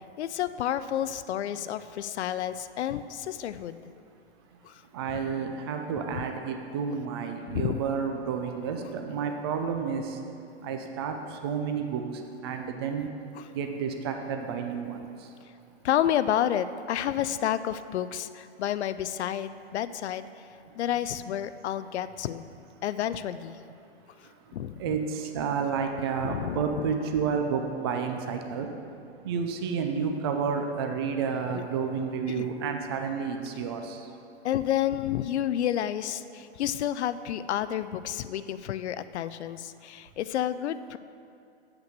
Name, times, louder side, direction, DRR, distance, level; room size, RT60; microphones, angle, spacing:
voice 1, 0.0-3.8 4.6-4.8 7.5-7.8 13.4-13.5 15.8-20.4 20.7-22.4 22.8-23.6 24.2-25.0 26.2-26.9 31.5-31.6 32.3-32.5 34.4-41.0, left 11 dB, 80° left, 13 dB, 0.5 m, -30 dB
voice 2, 4.9-10.2 10.6-12.0 12.4-13.1 13.5-15.0 24.8-28.7 29.2-34.1, right 6 dB, 25° right, 5 dB, 0.4 m, -30 dB
7.6 x 5.8 x 6.7 m, 2.5 s
hypercardioid pair, 160°, 33 cm